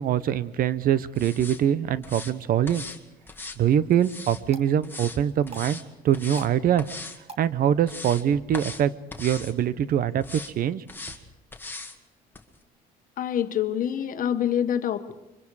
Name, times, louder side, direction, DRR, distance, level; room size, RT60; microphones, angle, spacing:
voice 1, 0.0-2.9 3.6-6.9 7.4-8.9 9.2-10.8, right 10 dB, 60° right, 16 dB, 0.8 m, -23 dB
sound 1, 1.2-1.6 2.0-2.3 2.7-3.0 3.3-4.4 4.8-5.2 5.5-5.8 6.1-6.5 6.8-7.2 7.6-8.2 8.5-8.8 9.1-9.5 10.2-10.5 10.9-11.2 11.5-12.0 12.3-12.4, left 3 dB, 10° left, 2.1 m, -39 dB
sound 2, 4.5-13.4, right 4 dB, 35° right, 1.9 m, -51 dB
voice 2, 13.2-15.1, left 9 dB, 55° left, 9 dB, 1.4 m, -26 dB
26.0 x 24.0 x 4.8 m, 1.0 s
cardioid pair, 110°, 17 cm